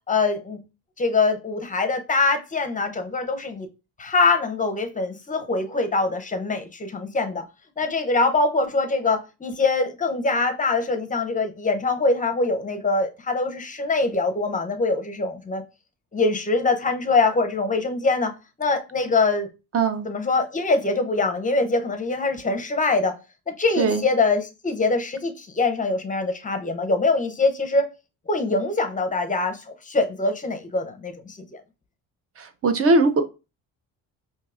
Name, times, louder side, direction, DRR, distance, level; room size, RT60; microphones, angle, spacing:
voice 1, 0.1-0.6 1.0-3.7 4.0-7.4 7.8-15.6 16.1-18.3 18.6-19.5 20.1-23.1 23.5-27.9 28.3-31.6, left 3 dB, 20° left, 0.6 m, -23 dB
voice 2, 19.7-20.1 23.8-24.0 32.4-33.2, right 3 dB, 40° right, 0.6 m, -20 dB
4.5 x 2.7 x 2.4 m
cardioid pair, 105°, 38 cm